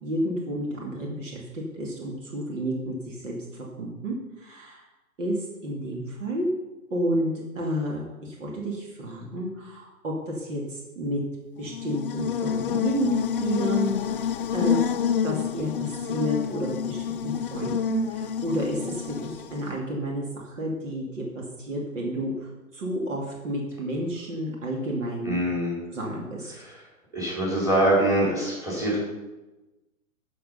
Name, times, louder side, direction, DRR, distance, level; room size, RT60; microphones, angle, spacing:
voice 1, 0.0-4.8 5.2-6.5 6.9-11.2 11.6-14.8 15.2-25.4 25.9-26.5, right 1 dB, 60° right, -2 dB, 2.7 m, -31 dB
Buzz, 11.6-19.8, left 8 dB, 40° left, 0.5 m, -28 dB
voice 2, 25.2-25.8 26.5-26.7 27.1-29.0, right 1 dB, 5° right, -5 dB, 4.7 m, -24 dB
13.0 x 6.8 x 5.5 m, 1.1 s
figure-of-eight pair, 120°, 43 cm